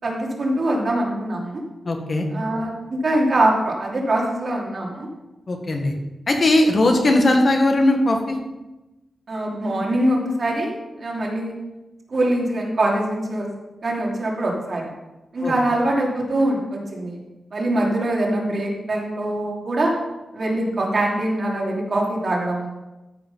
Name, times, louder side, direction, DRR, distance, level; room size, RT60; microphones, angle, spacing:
voice 1, 0.0-1.6 2.3-5.1 9.3-11.5 12.1-13.5 13.8-14.8 15.3-17.2 17.5-19.9 20.3-22.7, right 1 dB, 55° right, -2 dB, 2.9 m, -23 dB
voice 2, 1.8-2.3 5.5-5.9 6.3-8.4 15.4-15.5, left 1 dB, 45° left, 3 dB, 1.7 m, -18 dB
13.5 x 5.0 x 5.6 m, 1.0 s
cardioid pair, 70°, 0 cm